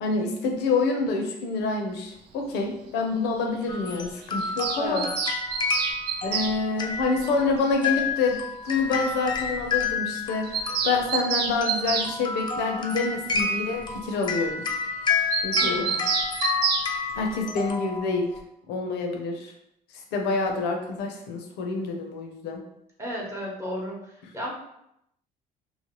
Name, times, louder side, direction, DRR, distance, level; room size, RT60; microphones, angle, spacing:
voice 1, 0.0-5.0 6.2-10.5 10.8-14.6 15.4-15.9 17.1-18.3 18.7-19.5 20.1-22.6, left 3 dB, 85° left, 2 dB, 0.6 m, -27 dB
sound 1, 3.7-18.4, left 5 dB, 25° left, 0.4 m, -30 dB
Bird vocalization bird call bird song, 4.4-6.5 8.0-8.1 8.3-8.4 8.7-8.8 9.1-9.2 9.4-9.5 9.7-9.9 10.1-12.1 15.3-16.9, right 6 dB, 70° right, 0.4 m, -28 dB
voice 2, 4.8-5.1 15.6-16.1 23.0-24.5, equal, 15° right, -4 dB, 0.8 m, -34 dB
3.1 x 2.1 x 2.9 m, 0.80 s
cardioid pair, 110°, 17 cm